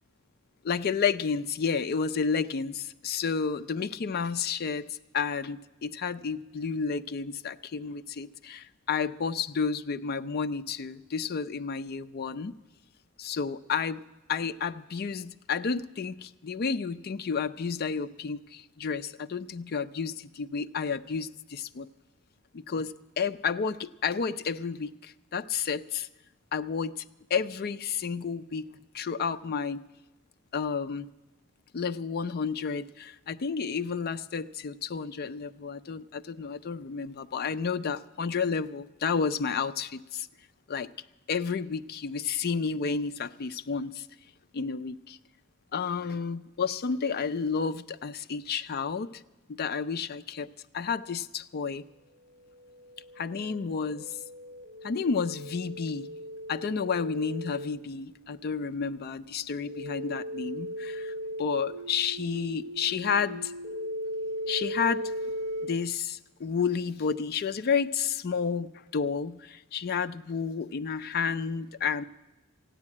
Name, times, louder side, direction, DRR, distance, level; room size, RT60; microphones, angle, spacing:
voice 1, 0.6-4.9 5.1-12.6 13.2-14.0 14.3-21.9 22.5-26.1 26.5-27.0 27.3-28.7 28.9-29.8 30.5-31.1 31.7-39.9 40.7-40.9 41.3-44.1 44.5-45.2 45.7-49.1 49.5-50.5 50.7-51.8 53.2-54.1 54.8-56.1 56.5-61.1 61.4-63.5 64.5-65.1 65.6-72.0, left 5 dB, 45° left, 11 dB, 0.4 m, -31 dB
sound 1, 52.4-65.6, equal, 35° right, 3.7 m, -38 dB
14.0 x 9.8 x 8.4 m, 1.0 s
head